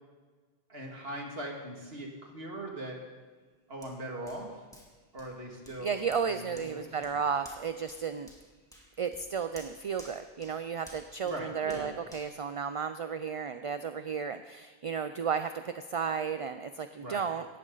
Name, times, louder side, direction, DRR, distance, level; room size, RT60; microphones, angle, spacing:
voice 1, 0.7-3.0 3.7-4.6 5.1-6.0 6.3-7.0 11.2-11.9 17.0-17.2, right 1 dB, 70° right, 0 dB, 2.6 m, -40 dB
Hands, 3.8-13.3 13.8-13.9, equal, 5° left, 2.4 m, -56 dB
voice 2, 5.8-8.3 9.0-17.5, right 6 dB, 45° right, 10 dB, 0.5 m, -33 dB
18.5 x 14.0 x 4.0 m, 1.4 s
omnidirectional pair, 1.1 m